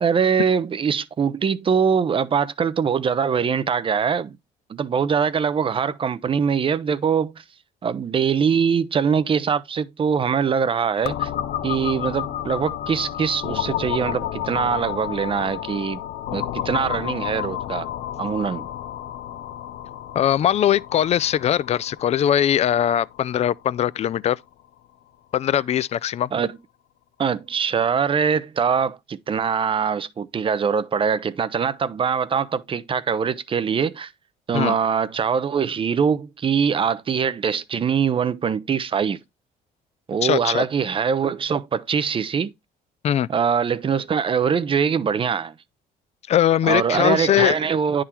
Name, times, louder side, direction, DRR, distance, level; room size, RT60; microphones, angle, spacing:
voice 1, 0.0-4.4 4.7-7.4 7.8-11.3 11.6-16.0 16.3-17.9 18.2-18.7 26.3-26.6 27.2-34.1 34.5-39.2 40.1-42.5 43.3-45.5 46.7-48.0, right 6 dB, 30° right, 0.5 m, -23 dB
sound 1, 11.0-24.6, left 11 dB, 80° left, 0.6 m, -31 dB
voice 2, 20.1-24.4 25.3-26.3 34.5-34.7 40.2-40.6 43.0-43.3 46.3-47.6, left 10 dB, 40° left, 0.4 m, -20 dB
9.7 x 3.7 x 4.4 m
cardioid pair, 110°, 17 cm